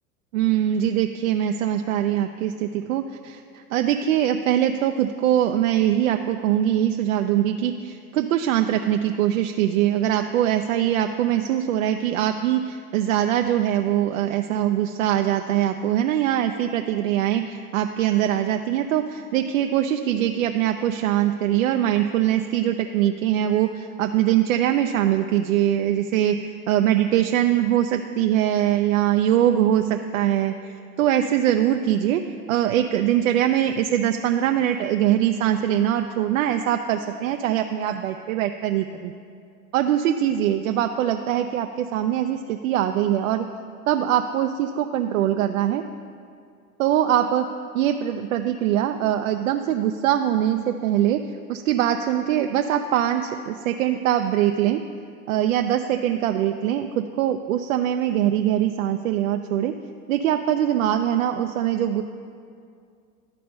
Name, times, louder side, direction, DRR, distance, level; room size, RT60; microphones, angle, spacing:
voice 1, 0.3-32.2 32.5-39.1 39.7-43.5 43.9-45.8 46.8-47.5 47.7-51.2 51.5-54.8 55.3-59.7 60.1-62.0, right 11 dB, 65° right, 6 dB, 0.5 m, -22 dB
11.5 x 4.2 x 5.4 m, 2.3 s
hypercardioid pair, 95°, 44 cm